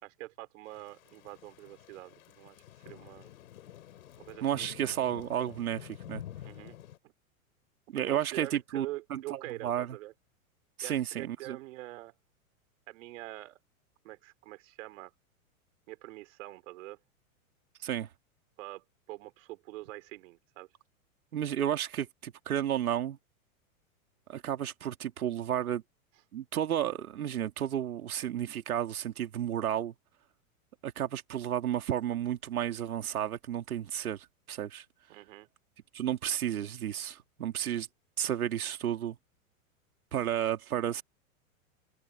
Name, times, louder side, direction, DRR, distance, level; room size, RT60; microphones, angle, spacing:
voice 1, 0.0-2.6 2.9-3.3 4.2-4.7 6.4-6.8 7.0-7.1 7.9-10.1 10.8-12.1 12.9-13.6 14.0-15.1 15.9-17.0 18.6-20.7 35.1-35.5, right 18 dB, 65° right, 3.6 m, -45 dB
Thunder / Rain, 0.7-7.0, left 12 dB, 75° left, 4.1 m, -49 dB
voice 2, 4.4-6.2 7.9-8.9 9.1-10.0 10.8-11.6 17.8-18.1 21.3-23.2 24.3-25.8 26.3-29.9 30.8-34.8 35.9-37.9 38.2-39.2 40.1-41.0, right 10 dB, 85° right, 2.4 m, -32 dB
open air
hypercardioid pair, 115°, 42 cm